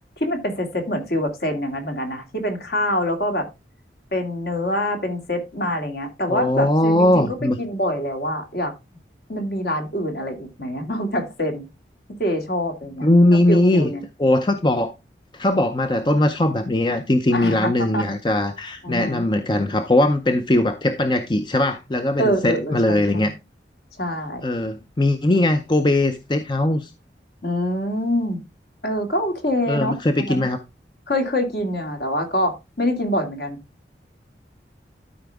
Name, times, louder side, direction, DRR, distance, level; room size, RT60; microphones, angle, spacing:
voice 1, 0.2-3.5 4.1-8.7 9.3-11.6 12.2-13.1 13.5-14.0 17.3-18.0 18.8-19.2 22.2-23.3 24.0-24.5 27.4-28.4 28.8-30.5 31.1-33.6, equal, 65° left, 2.4 m, -25 dB
voice 2, 6.3-7.6 13.0-13.9 14.2-14.9 15.3-23.3 24.4-26.9 29.7-30.6, left 1 dB, 25° left, 0.6 m, -20 dB
12.5 x 5.0 x 3.4 m
head